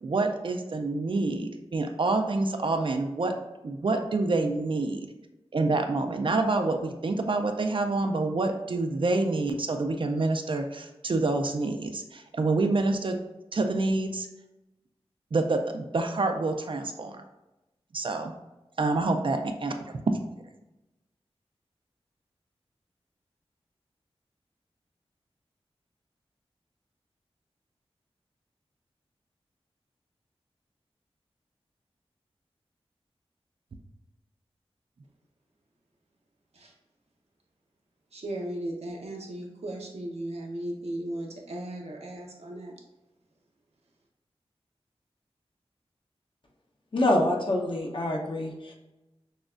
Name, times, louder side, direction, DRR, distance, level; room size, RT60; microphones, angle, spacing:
voice 1, 0.0-3.3 3.6-5.1 5.5-13.2 13.5-14.3 15.3-17.2 17.9-18.3 18.8-19.7, right 3 dB, 55° right, 5 dB, 0.4 m, -27 dB
voice 2, 38.1-42.8, right 1 dB, 80° right, 0 dB, 0.8 m, -36 dB
voice 3, 46.9-48.7, left 1 dB, 50° left, -1 dB, 0.9 m, -26 dB
6.3 x 2.3 x 2.5 m, 0.99 s
wide cardioid pair, 75°, 11 cm